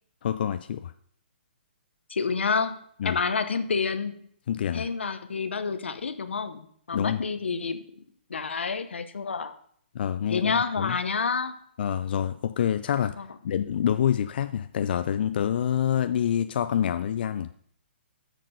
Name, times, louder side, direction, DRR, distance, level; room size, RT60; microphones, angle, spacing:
voice 1, 0.2-0.9 3.0-3.2 4.5-4.9 6.9-7.2 9.9-11.0 11.8-13.2 13.4-17.5, left 9 dB, 60° left, 11 dB, 0.4 m, -27 dB
voice 2, 2.1-2.8 3.0-4.3 4.7-8.0 8.3-9.5 10.3-11.6 13.2-13.3, left 5 dB, 90° left, 11 dB, 0.8 m, -29 dB
7.7 x 6.6 x 5.0 m, 0.63 s
hypercardioid pair, 150°, 6 cm